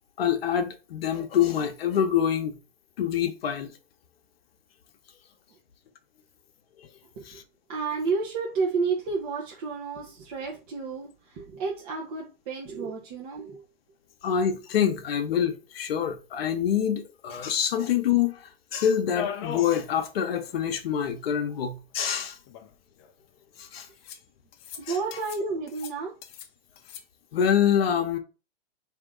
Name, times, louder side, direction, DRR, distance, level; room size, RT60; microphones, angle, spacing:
voice 1, 0.2-2.5 3.0-3.7 7.3-7.4 14.2-22.4 23.6-23.9 24.9-25.0 27.3-28.2, left 9 dB, 75° left, 0.8 m, -26 dB
voice 2, 7.7-13.6 24.8-26.1, right 4 dB, 40° right, 0.8 m, -31 dB
sound 1, 19.1-19.8 20.1-20.2 20.5-20.6 21.6-21.7 22.5-23.1 24.0-24.2 24.5-24.8 25.1-25.4 25.7-26.5 26.8-27.0, left 8 dB, 30° left, 0.4 m, -37 dB
3.5 x 2.8 x 3.7 m
hypercardioid pair, 140°, 31 cm